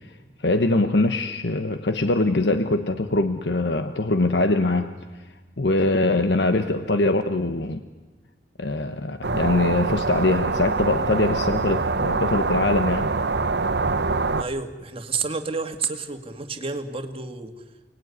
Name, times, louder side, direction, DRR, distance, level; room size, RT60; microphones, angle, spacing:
voice 1, 0.4-5.0 5.6-7.8 8.6-13.1, left 2 dB, 70° left, 8 dB, 1.2 m, -22 dB
sound 1, 9.2-14.4, right 3 dB, 70° right, 1.0 m, -24 dB
voice 2, 14.4-17.6, right 4 dB, 35° right, 6 dB, 2.0 m, -30 dB
29.5 x 19.0 x 9.7 m, 1.3 s
head